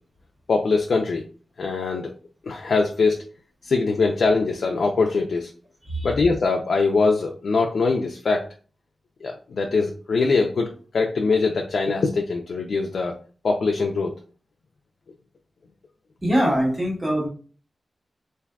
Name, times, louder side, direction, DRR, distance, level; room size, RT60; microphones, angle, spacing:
voice 1, 0.5-1.2 1.6-2.1 2.4-3.2 3.6-5.5 6.0-8.5 9.2-13.1 13.4-14.1, left 4 dB, 80° left, 2 dB, 0.4 m, -22 dB
voice 2, 16.2-17.3, equal, 20° right, -3 dB, 1.2 m, -22 dB
3.4 x 2.5 x 2.3 m, 0.40 s
wide cardioid pair, 125°, 0 cm